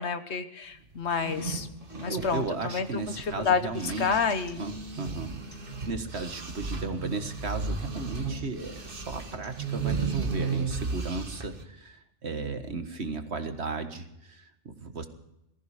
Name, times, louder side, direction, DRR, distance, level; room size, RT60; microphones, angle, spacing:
voice 1, 0.0-1.7 2.0-2.9 3.2-4.6, left 5 dB, 65° left, 9 dB, 1.4 m, -29 dB
sound 1, 1.1-3.4 3.7-11.6, right 4 dB, 50° right, 1.6 m, -35 dB
sound 2, 1.9-9.9, left 1 dB, 35° left, 4.6 m, -49 dB
voice 2, 2.1-4.2 4.6-5.4 5.9-12.0 12.2-15.1, right 3 dB, 65° right, 7 dB, 1.8 m, -35 dB
19.0 x 14.5 x 5.0 m, 0.84 s
omnidirectional pair, 1.2 m